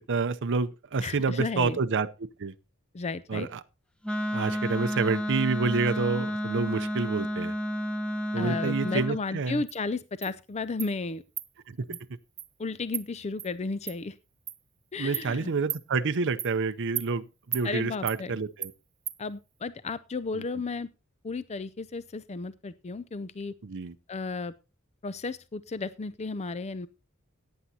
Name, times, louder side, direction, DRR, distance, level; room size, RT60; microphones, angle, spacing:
voice 1, 0.1-2.5 3.3-3.6 4.3-7.5 8.3-9.6 11.7-12.0 15.0-18.7 20.3-20.4 23.6-24.0, right 4 dB, 55° right, 0.6 m, -28 dB
voice 2, 1.0-1.8 2.9-3.5 8.4-11.2 11.9-12.0 12.6-14.2 14.9-15.5 17.6-18.4 19.2-20.9 21.2-23.5 24.1-24.5 25.0-26.9, left 3 dB, 30° left, 0.5 m, -33 dB
Wind instrument woodwind instrument, 4.0-9.2, equal, 5° left, 1.0 m, -31 dB
Insect, 9.7-9.8 10.2-10.3 10.8-10.9 11.4-11.5 11.9-12.0 12.4-12.5 12.9-13.0 13.4-13.5 13.9-14.0 14.5-14.6 15.1-15.3 15.7-15.8 16.4-16.5 17.0-17.1 17.5-17.7 18.1-18.2 18.6-18.7 19.1-19.2, right 10 dB, 25° right, 0.8 m, -34 dB
17.0 x 9.5 x 2.8 m
head